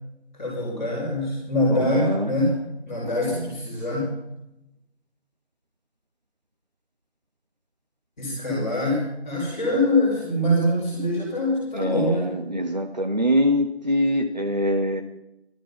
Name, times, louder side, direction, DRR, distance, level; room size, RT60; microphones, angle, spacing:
voice 1, 0.3-2.6 2.8-4.1 8.2-12.3, left 1 dB, 5° left, -16 dB, 3.6 m, -24 dB
voice 2, 1.7-2.3 3.0-3.5 11.7-15.0, equal, 40° right, 4 dB, 1.3 m, -24 dB
18.0 x 13.5 x 5.7 m, 0.87 s
figure-of-eight pair, 180°, 32 cm